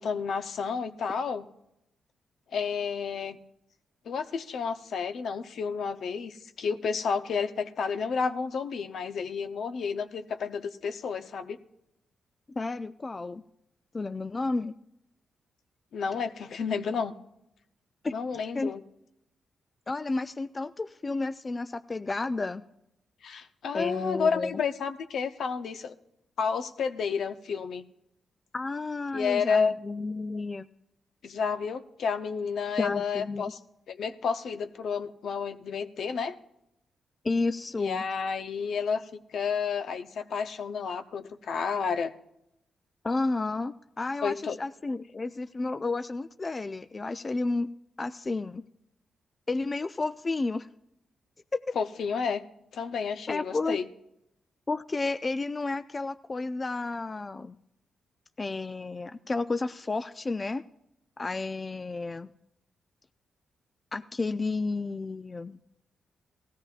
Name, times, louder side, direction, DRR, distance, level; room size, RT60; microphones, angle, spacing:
voice 1, 0.0-1.5 2.5-3.4 4.1-11.6 15.9-17.1 18.1-18.8 23.2-25.9 26.4-27.8 29.1-29.7 31.2-33.6 33.9-36.4 37.8-39.1 39.3-42.1 44.2-44.6 51.8-52.4 52.7-53.9, left 5 dB, 70° left, 8 dB, 0.7 m, -30 dB
voice 2, 12.6-13.4 13.9-14.7 18.0-18.2 18.5-18.7 19.9-22.6 23.7-24.5 28.5-30.7 32.8-33.5 37.2-38.0 43.0-47.7 48.0-48.6 49.5-50.7 51.5-51.8 53.3-53.8 54.7-57.5 58.4-60.6 61.2-62.3 63.9-65.6, left 3 dB, 35° left, 10 dB, 0.4 m, -31 dB
18.0 x 14.0 x 2.5 m, 0.82 s
supercardioid pair, 55°, 0 cm